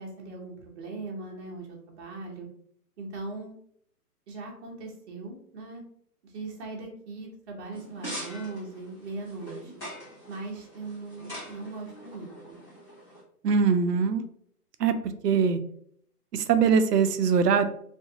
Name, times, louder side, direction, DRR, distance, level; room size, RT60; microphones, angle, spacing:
voice 1, 0.0-2.5 3.0-3.6 4.3-5.8 6.2-9.8 10.3-12.6, right 3 dB, 45° right, -1 dB, 0.8 m, -39 dB
sound 1, 7.7-13.2, equal, 5° left, 0.7 m, -43 dB
voice 2, 13.4-14.2 14.8-14.9 15.2-15.6 16.3-17.7, right 6 dB, 90° right, 10 dB, 0.5 m, -22 dB
2.5 x 2.4 x 2.6 m, 0.65 s
hypercardioid pair, 145°, 47 cm